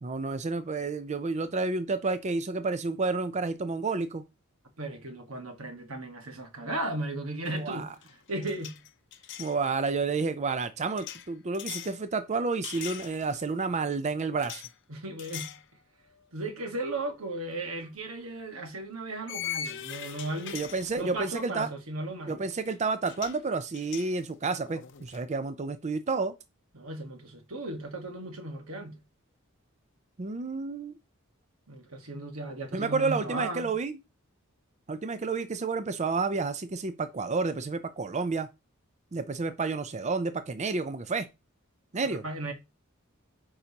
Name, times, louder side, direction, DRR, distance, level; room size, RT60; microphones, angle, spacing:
voice 1, 0.0-4.2 7.5-7.9 9.4-14.6 20.5-21.7 22.3-26.3 30.2-30.9 32.7-34.0 34.9-38.5 39.1-41.3 41.9-42.2, right 4 dB, 35° right, 0.5 m, -30 dB
voice 2, 4.8-7.9 8.3-8.8 14.9-15.5 16.3-20.6 20.9-22.4 26.7-29.0 31.7-33.7 42.0-42.5, right 2 dB, 85° right, 1.5 m, -36 dB
sound 1, 7.4-7.7 7.9-9.6 11.0-12.0 12.6-13.5 14.4-14.7 15.2-15.6 16.1-16.3 17.8-17.9 19.3-21.3 22.7-22.8 23.0-23.4 23.7-25.2, left 10 dB, 60° left, 0.7 m, -41 dB
8.8 x 5.2 x 2.9 m
head